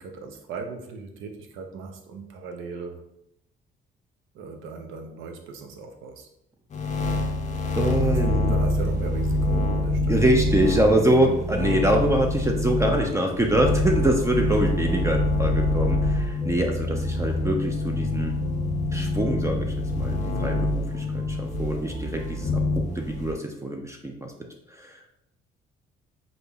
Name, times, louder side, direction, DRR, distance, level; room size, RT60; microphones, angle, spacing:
voice 1, 0.0-3.0 4.3-6.3 8.0-8.2 8.5-10.3, right 4 dB, 90° right, 4 dB, 0.5 m, -38 dB
sound 1, 6.7-23.3, left 2 dB, 35° left, 0.5 m, -26 dB
voice 2, 7.8-8.5 10.1-18.3 18.9-24.3 24.7-25.2, right 1 dB, 15° right, 2 dB, 0.4 m, -25 dB
sound 2, 8.5-23.0, equal, 50° right, 1.0 m, -35 dB
5.1 x 2.0 x 2.3 m, 0.79 s
cardioid pair, 90°, 20 cm